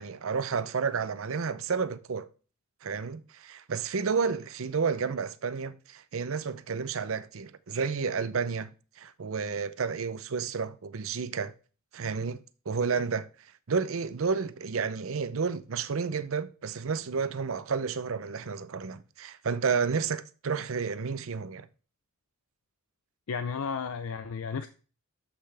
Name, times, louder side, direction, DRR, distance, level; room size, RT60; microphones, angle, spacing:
voice 1, 0.0-2.3 2.8-11.5 11.9-13.3 13.7-21.7, right 5 dB, 65° right, 0.6 m, -31 dB
voice 2, 23.3-24.7, left 5 dB, 75° left, 0.5 m, -33 dB
12.5 x 5.7 x 3.3 m
head